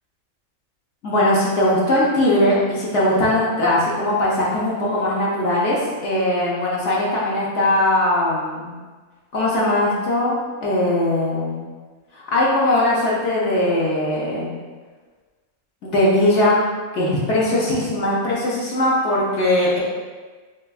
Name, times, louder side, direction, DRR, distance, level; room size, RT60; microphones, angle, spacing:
voice 1, 1.0-8.7 9.3-11.6 12.1-14.5 15.8-16.6 16.9-19.8, left 1 dB, 65° left, -6 dB, 1.0 m, -20 dB
3.4 x 3.3 x 2.3 m, 1.4 s
omnidirectional pair, 1.4 m